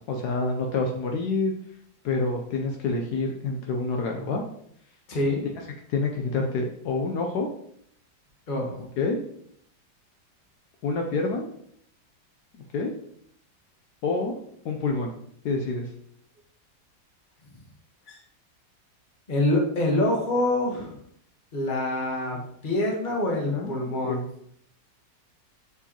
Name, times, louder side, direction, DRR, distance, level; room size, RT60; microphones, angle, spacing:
voice 1, 0.0-1.5 2.0-4.4 5.9-7.5 9.0-9.2 10.8-11.4 12.7-12.9 14.0-14.3 14.6-15.2 15.4-15.9 23.5-24.2, left 3 dB, 70° left, 2 dB, 1.2 m, -27 dB
voice 2, 5.1-5.4 8.5-8.8 18.1-18.2 19.3-20.9 21.5-22.4 22.6-24.3, left 1 dB, 30° left, 0 dB, 1.3 m, -25 dB
6.8 x 4.7 x 2.9 m, 0.68 s
omnidirectional pair, 1.9 m